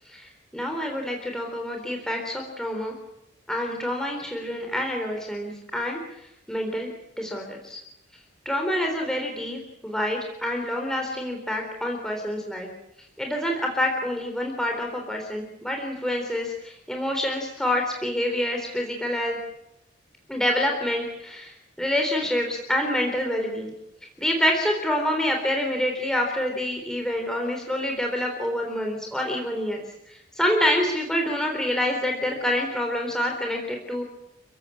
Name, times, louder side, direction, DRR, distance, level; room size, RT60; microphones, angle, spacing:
voice 1, 0.1-2.9 3.5-6.0 6.5-7.8 8.5-12.7 13.2-19.4 20.3-21.5 21.8-23.7 24.2-29.8 30.4-34.0, left 1 dB, 5° left, 1 dB, 3.7 m, -27 dB
29.5 x 16.5 x 8.6 m, 0.84 s
head